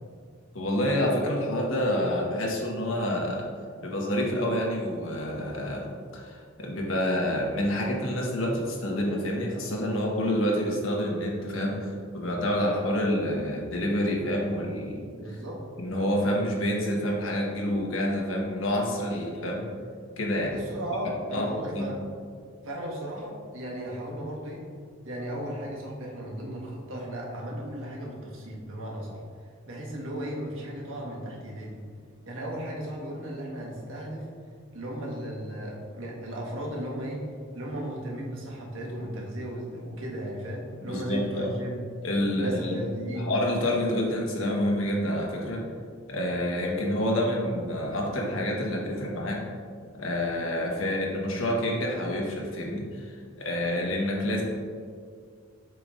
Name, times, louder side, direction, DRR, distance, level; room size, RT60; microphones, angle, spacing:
voice 1, 0.5-3.5 3.8-15.4 15.8-19.7 20.2-20.6 21.3-21.5 21.7-21.9 40.8-41.5 42.0-42.8 43.1-45.6 46.1-49.4 49.9-54.4, left 1 dB, 85° left, -2 dB, 1.2 m, -28 dB
voice 2, 15.2-15.6 20.5-22.0 22.6-24.6 25.0-29.2 29.6-31.8 32.2-34.3 34.7-37.2 37.5-41.8 42.3-43.3, right 1 dB, 80° right, -2 dB, 1.4 m, -35 dB
7.6 x 5.3 x 2.5 m, 2.1 s
head